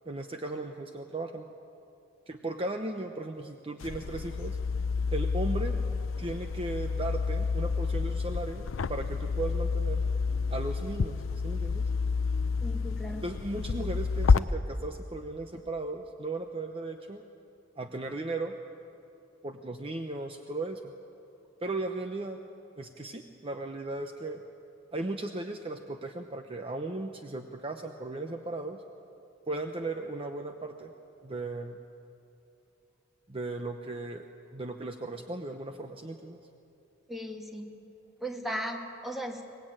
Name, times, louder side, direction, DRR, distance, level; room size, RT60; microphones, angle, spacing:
voice 1, 0.1-1.5 2.3-4.6 5.1-5.8 6.2-10.0 10.5-11.2 11.4-11.9 13.2-17.2 17.8-18.5 19.4-20.9 21.6-22.4 22.8-24.4 24.9-28.8 29.5-30.9 31.2-31.8 33.3-34.3 34.5-36.4, right 2 dB, 30° right, 5 dB, 0.9 m, -36 dB
sound 1, 3.8-14.4, left 4 dB, 85° left, 0.5 m, -29 dB
voice 2, 12.6-13.2 37.1-37.8 38.2-39.4, equal, ahead, 2 dB, 2.0 m, -37 dB
23.5 x 20.0 x 8.9 m, 2.7 s
head